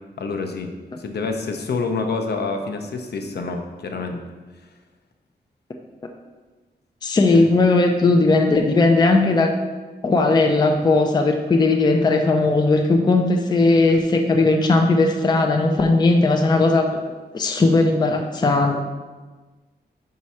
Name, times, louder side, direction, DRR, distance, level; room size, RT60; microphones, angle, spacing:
voice 1, 0.2-0.7 1.0-4.2 7.3-7.5, left 4 dB, 70° left, 4 dB, 0.6 m, -27 dB
voice 2, 7.0-9.6 10.0-17.0 17.3-18.8, left 3 dB, 25° left, 3 dB, 0.4 m, -17 dB
5.2 x 4.7 x 4.2 m, 1.3 s
wide cardioid pair, 170°, 18 cm